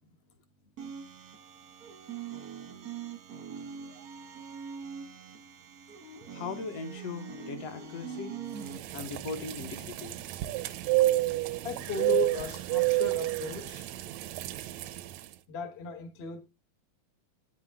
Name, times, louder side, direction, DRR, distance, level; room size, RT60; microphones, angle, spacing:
sound 1, 0.8-8.8, right 7 dB, 55° right, 0.9 m, -43 dB
voice 1, 6.3-8.4 8.9-10.2, left 5 dB, 65° left, 2.0 m, -39 dB
sound 2, 8.6-15.2, right 17 dB, 80° right, 1.6 m, -30 dB
voice 2, 11.6-13.8 15.5-16.4, left 6 dB, 85° left, 0.5 m, -36 dB
9.2 x 7.4 x 3.6 m
omnidirectional pair, 3.5 m